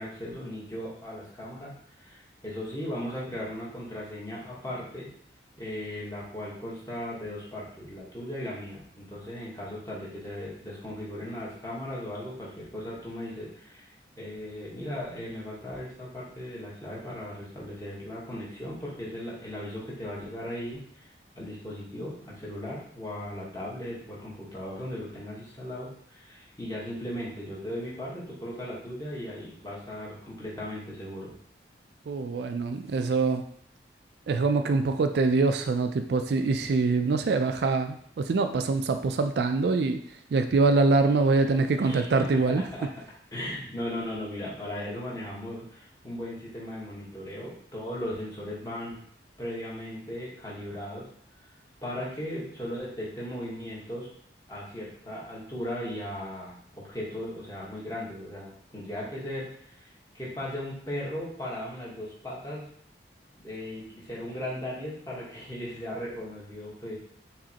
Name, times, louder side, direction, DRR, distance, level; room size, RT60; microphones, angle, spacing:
voice 1, 0.0-1.7 2.0-5.1 5.6-21.1 21.4-31.3 41.8-42.9 43.3-49.0 49.4-51.1 51.8-54.1 54.5-59.9 60.1-62.7 63.3-67.0, left 1 dB, 20° left, -6 dB, 1.2 m, -37 dB
voice 2, 32.1-33.5 34.3-40.0 40.3-42.6, right 3 dB, 65° right, 7 dB, 0.3 m, -24 dB
4.9 x 3.1 x 2.9 m, 0.63 s
head